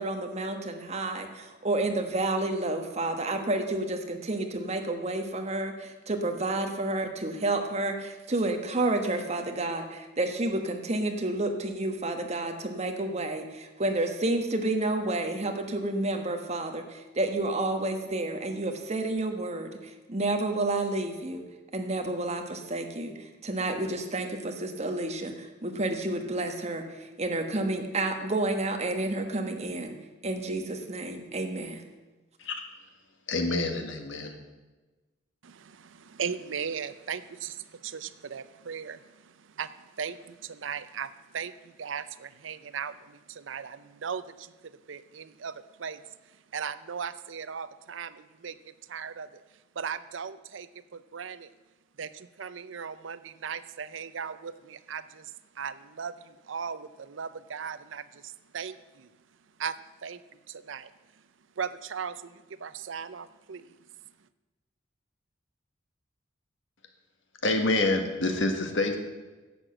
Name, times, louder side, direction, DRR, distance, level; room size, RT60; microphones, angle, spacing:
voice 1, 0.0-21.4 21.7-29.9 30.2-31.8, right 2 dB, 35° right, 5 dB, 1.3 m, -30 dB
voice 2, 33.3-34.4 67.4-69.0, left 2 dB, 70° left, 5 dB, 1.6 m, -27 dB
voice 3, 35.4-46.0 46.5-49.4 49.7-51.5 52.0-59.1 59.6-60.2 60.5-60.9 61.6-63.8, right 7 dB, 75° right, 14 dB, 0.6 m, -38 dB
11.0 x 7.9 x 7.7 m, 1.2 s
head